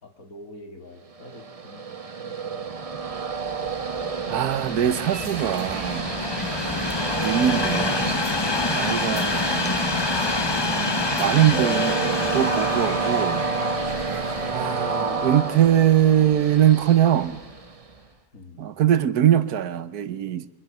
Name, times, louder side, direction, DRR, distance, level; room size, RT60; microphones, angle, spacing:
voice 1, 0.0-3.1 6.8-7.2 14.1-16.4 18.3-18.7, left 2 dB, 65° left, 3.0 m, -46 dB
Train, 1.2-17.9, right 4 dB, 30° right, 0.8 m, -30 dB
Train 2, 3.3-16.5 17.2-17.4, left 3 dB, 25° left, 0.6 m, -28 dB
voice 2, 4.3-6.1 7.2-8.2 8.7-9.7 10.7-13.5 14.5-17.4 18.6-20.5, right 11 dB, 85° right, 1.5 m, -22 dB
sound 1, 4.6-15.0, right 3 dB, 45° right, 2.2 m, -37 dB
23.0 x 21.0 x 7.2 m
omnidirectional pair, 1.6 m